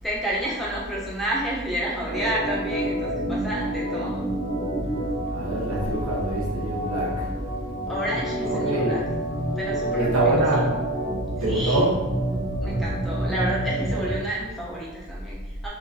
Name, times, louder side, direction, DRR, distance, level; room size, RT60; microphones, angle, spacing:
voice 1, 0.0-4.3 7.9-9.0 9.6-10.3 11.4-11.8 12.6-15.7, right 1 dB, ahead, -6 dB, 0.3 m, -30 dB
Organ, 2.0-14.2, right 1 dB, 25° right, 0.8 m, -28 dB
voice 2, 5.3-7.3 8.5-8.9 9.9-10.7 11.4-12.0, right 1 dB, 85° right, -4 dB, 0.7 m, -24 dB
2.5 x 2.2 x 2.3 m, 1.1 s
head